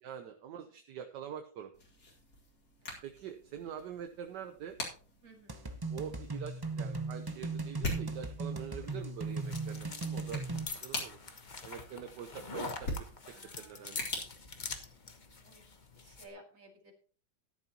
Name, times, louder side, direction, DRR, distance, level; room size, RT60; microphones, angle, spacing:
voice 1, 0.0-1.7 3.0-4.8 5.9-10.4 10.7-11.2 11.6-12.9 13.6-14.0, right 8 dB, 70° right, 7 dB, 1.4 m, -45 dB
sound 1, 1.7-15.4, left 1 dB, 60° left, 3.0 m, -45 dB
voice 2, 5.2-5.7 13.3-14.1 15.4-15.6 15.9-16.9, right 1 dB, 45° right, 2 dB, 2.7 m, -57 dB
sound 2, 5.5-10.6, right 3 dB, 20° right, 0.6 m, -38 dB
sound 3, 8.8-16.3, left 4 dB, 30° left, 1.1 m, -45 dB
13.0 x 10.5 x 2.9 m, 0.40 s
omnidirectional pair, 2.0 m